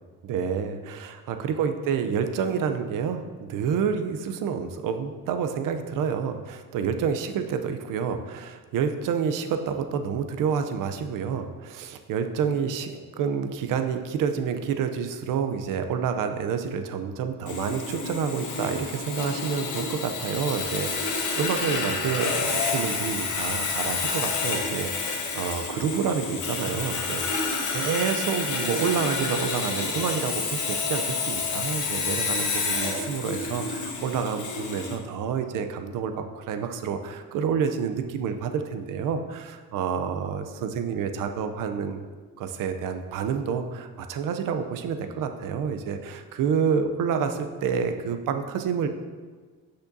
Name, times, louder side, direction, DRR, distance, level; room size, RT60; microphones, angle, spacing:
voice 1, 0.2-42.0 42.4-48.9, right 6 dB, 80° right, 7 dB, 0.7 m, -28 dB
Sawing, 17.5-35.0, left 4 dB, 65° left, 1.2 m, -29 dB
8.3 x 6.5 x 2.7 m, 1.4 s
cardioid pair, 130°, 32 cm